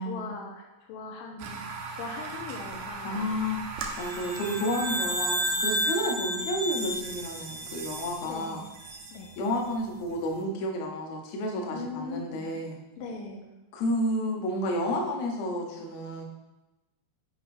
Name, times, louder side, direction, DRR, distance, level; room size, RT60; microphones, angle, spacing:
voice 1, 0.0-1.6 1.9-3.4 8.2-8.7 9.1-9.3 11.7-12.5 13.0-13.5, left 4 dB, 80° left, 1 dB, 2.3 m, -40 dB
sound 1, 1.4-10.4, right 5 dB, 75° right, 1.6 m, -41 dB
voice 2, 3.0-3.6 4.0-8.6 9.4-12.8 13.7-16.2, left 1 dB, 65° left, 1 dB, 2.0 m, -31 dB
sound 2, 3.9-8.5, equal, 55° right, 1.3 m, -31 dB
7.8 x 5.1 x 4.2 m, 1.0 s
omnidirectional pair, 4.1 m